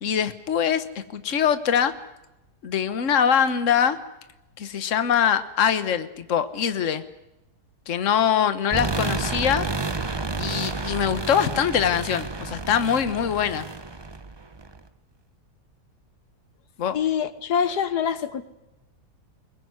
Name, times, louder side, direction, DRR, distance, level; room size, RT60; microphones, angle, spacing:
voice 1, 0.0-1.9 2.6-4.0 4.6-7.0 7.9-9.7 10.4-13.7 16.8-17.0, left 8 dB, 55° left, 11 dB, 1.5 m, -23 dB
sound 1, 8.7-14.8, right 3 dB, 20° right, 0.8 m, -30 dB
voice 2, 16.9-18.4, left 7 dB, 85° left, 13 dB, 1.7 m, -25 dB
23.0 x 21.0 x 9.6 m, 0.92 s
omnidirectional pair, 1.7 m